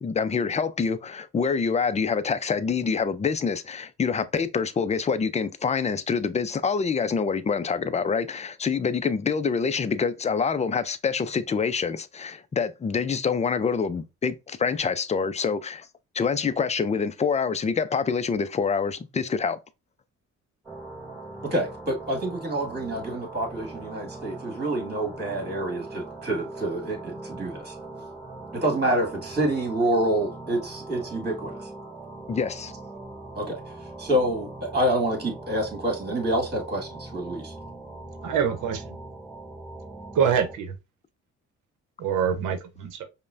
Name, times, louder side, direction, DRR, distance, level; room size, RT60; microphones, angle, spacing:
voice 1, 0.0-15.9 16.1-19.6 32.3-32.7, left 5 dB, 25° left, 0.4 m, -26 dB
sound 1, 20.6-40.5, right 2 dB, 10° right, 2.3 m, -41 dB
voice 2, 21.4-27.7 28.5-31.6 33.4-33.6 34.0-37.5, right 1 dB, 35° right, 1.9 m, -27 dB
voice 3, 38.2-38.8 40.1-40.7 42.0-43.0, right 7 dB, 80° right, 0.8 m, -25 dB
5.3 x 2.2 x 2.5 m
cardioid pair, 90°, 30 cm